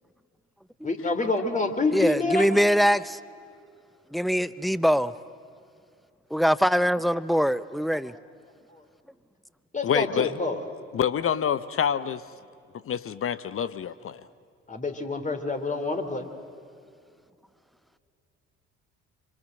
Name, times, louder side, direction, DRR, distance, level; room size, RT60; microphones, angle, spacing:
voice 1, 0.8-2.6 6.3-6.4 7.9-8.0 8.7-8.8 9.7-10.7 14.7-16.3, left 3 dB, 20° left, 3.2 m, -27 dB
voice 2, 1.9-3.2 4.1-5.1 6.3-8.1, equal, ahead, 0.8 m, -23 dB
voice 3, 9.8-10.3 10.9-12.2 12.8-14.2, left 8 dB, 40° left, 0.9 m, -27 dB
26.0 x 25.5 x 7.8 m
hypercardioid pair, 55°, 34 cm